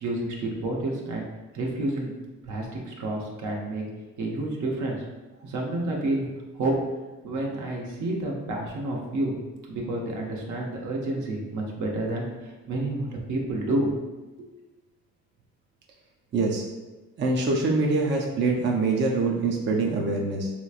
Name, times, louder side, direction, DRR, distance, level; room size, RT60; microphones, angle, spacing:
voice 1, 0.0-1.3 1.5-2.1 2.4-3.8 4.2-5.0 5.4-6.3 6.5-6.8 7.2-9.4 9.7-12.2 12.7-13.9 14.4-14.5, right 2 dB, 75° right, -1 dB, 0.8 m, -29 dB
voice 2, 16.3-16.7 17.2-20.5, right 3 dB, 40° right, 0 dB, 0.5 m, -24 dB
3.2 x 3.0 x 2.4 m, 1.2 s
cardioid pair, 90°, 30 cm